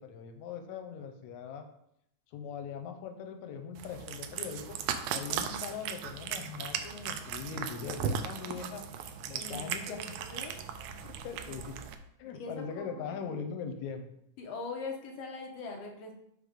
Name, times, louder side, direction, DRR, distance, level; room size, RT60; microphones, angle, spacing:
voice 1, 0.0-1.7 2.3-4.8 5.1-8.9 9.3-10.2 10.5-10.6 11.0-11.8 12.2-14.1, left 6 dB, 90° left, 6 dB, 2.1 m, -41 dB
Cat, 3.8-11.9, right 8 dB, 80° right, 1.7 m, -37 dB
voice 2, 5.3-5.6 9.4-10.5 12.3-13.2 14.4-16.1, left 3 dB, 70° left, 2 dB, 1.7 m, -42 dB
5.0 x 4.4 x 5.1 m, 0.76 s
omnidirectional pair, 3.3 m